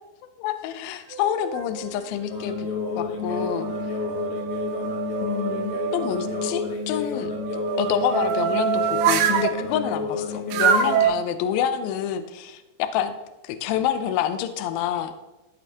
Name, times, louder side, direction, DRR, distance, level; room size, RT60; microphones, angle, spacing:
voice 1, 0.4-2.7 3.0-3.7 5.2-7.3 7.8-13.1 13.4-15.1, left 9 dB, 90° left, 9 dB, 2.1 m, -27 dB
sound 1, 1.1-2.0 2.6-6.5 7.3-9.5 10.5-11.1, right 8 dB, 85° right, 2.1 m, -26 dB
sound 2, 2.3-11.1, left 4 dB, 75° left, 1.7 m, -30 dB
14.5 x 5.2 x 2.9 m, 1.0 s
omnidirectional pair, 5.0 m